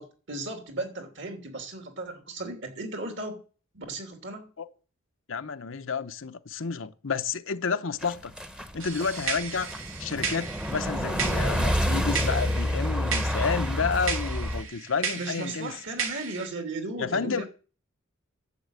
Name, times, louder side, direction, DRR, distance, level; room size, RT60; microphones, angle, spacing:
voice 1, 0.0-3.4 3.7-4.5 15.2-17.5, right 2 dB, 65° right, 2.9 m, -36 dB
voice 2, 5.3-8.3 8.7-9.7 10.0-15.7 17.0-17.5, left 5 dB, 70° left, 0.9 m, -30 dB
sound 1, 8.0-14.6, equal, 5° right, 0.9 m, -28 dB
sound 2, 8.8-16.5, right 6 dB, 90° right, 2.3 m, -35 dB
11.5 x 7.5 x 8.2 m
head